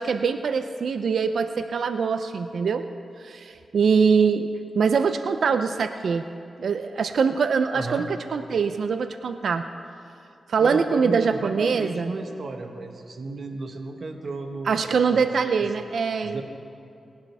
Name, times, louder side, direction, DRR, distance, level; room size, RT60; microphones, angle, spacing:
voice 1, 0.0-2.9 3.2-4.5 4.8-6.2 6.6-9.7 10.5-12.1 14.7-16.4, right 5 dB, 75° right, 9 dB, 0.5 m, -23 dB
voice 2, 7.7-8.0 10.6-14.7 15.1-15.3 16.2-16.4, right 3 dB, 60° right, 4 dB, 1.4 m, -33 dB
21.0 x 11.0 x 3.5 m, 2.6 s
cardioid pair, 55°, 0 cm